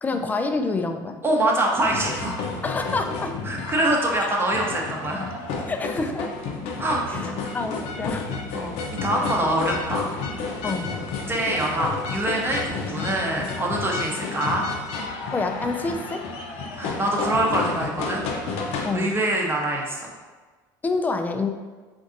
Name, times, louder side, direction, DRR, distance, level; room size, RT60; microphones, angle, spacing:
voice 1, 0.0-1.2 2.6-3.3 5.7-6.3 7.1-7.3 7.5-8.3 9.2-9.3 10.6-10.9 15.3-16.2 18.8-19.2 20.8-21.5, left 3 dB, 15° left, 6 dB, 0.3 m, -27 dB
voice 2, 1.2-2.4 3.5-5.3 6.8-7.3 8.5-10.0 10.3-10.5 11.3-14.7 16.8-18.2 18.9-20.1, right 1 dB, 20° right, -1 dB, 0.7 m, -25 dB
sound 1, 1.8-18.9, left 4 dB, 65° left, 0.6 m, -31 dB
3.9 x 2.6 x 2.5 m, 1.4 s
hypercardioid pair, 80°, 11 cm